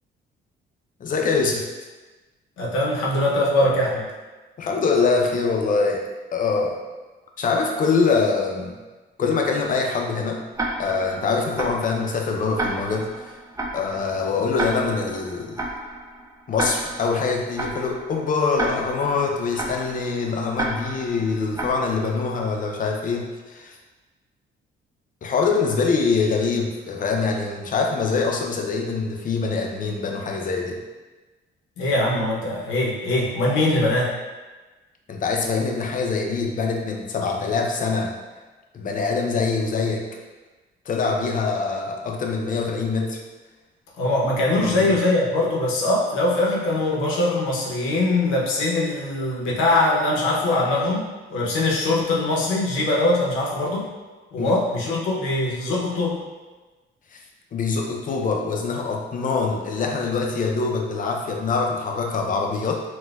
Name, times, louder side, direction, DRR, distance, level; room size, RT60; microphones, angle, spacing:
voice 1, 1.0-1.7 4.6-6.0 6.3-6.8 7.4-8.7 9.2-10.4 10.8-13.3 13.7-15.6 16.5-23.8 25.2-30.8 35.1-38.1 38.7-40.1 40.9-43.2 44.6-44.9 54.4-54.6 57.1-57.2 57.5-62.8, left 4 dB, 45° left, 1 dB, 0.5 m, -24 dB
voice 2, 2.6-4.0 31.8-34.1 44.0-53.9 54.3-56.2, left 2 dB, 90° left, -3 dB, 0.7 m, -22 dB
Tick-tock, 10.6-22.4, right 2 dB, 15° right, 0.4 m, -32 dB
4.1 x 2.2 x 2.3 m, 1.2 s
cardioid pair, 90°, 20 cm